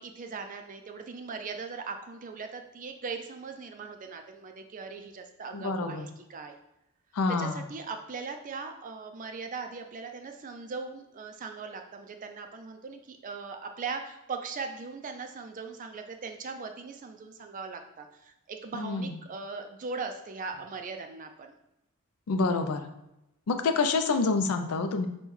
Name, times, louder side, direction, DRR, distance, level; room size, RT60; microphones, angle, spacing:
voice 1, 0.0-6.5 7.4-21.5, right 4 dB, 35° right, 6 dB, 0.4 m, -39 dB
voice 2, 5.5-6.1 7.1-7.7 18.7-19.1 22.3-22.9 23.5-25.1, left 4 dB, 85° left, 7 dB, 0.4 m, -27 dB
5.3 x 2.2 x 3.1 m, 0.88 s
head